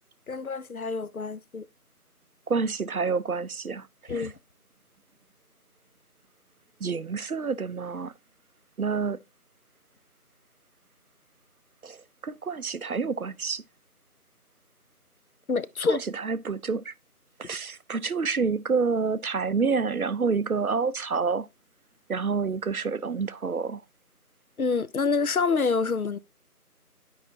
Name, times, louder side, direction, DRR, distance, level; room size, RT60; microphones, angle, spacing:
voice 1, 0.3-1.7 4.1-4.3 15.5-16.0 24.6-26.2, left 4 dB, 65° left, 0.5 m, -27 dB
voice 2, 2.5-4.3 6.8-8.1 8.8-9.2 11.8-12.0 12.2-13.6 15.9-16.9 17.4-21.5 22.1-23.8, right 5 dB, 65° right, 0.5 m, -28 dB
10.0 x 4.9 x 2.6 m
figure-of-eight pair, 175°, 47 cm